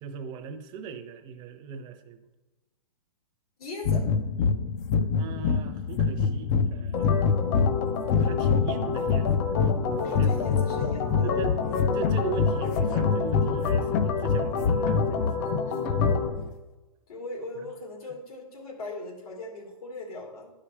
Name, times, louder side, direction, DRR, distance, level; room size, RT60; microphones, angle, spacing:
voice 1, 0.0-2.2 5.2-7.2 8.2-9.3 10.2-10.4 11.2-11.6 11.9-15.6 17.6-17.7, right 6 dB, 25° right, 6 dB, 0.7 m, -39 dB
voice 2, 3.6-4.1 10.0-11.3 17.1-20.5, left 2 dB, 85° left, 1 dB, 2.5 m, -39 dB
sound 1, 3.8-16.5, left 5 dB, 30° left, 0.4 m, -26 dB
Organ, 6.9-16.3, left 4 dB, 50° left, 1.2 m, -30 dB
11.0 x 5.0 x 4.4 m, 1.1 s
hypercardioid pair, 145°, 18 cm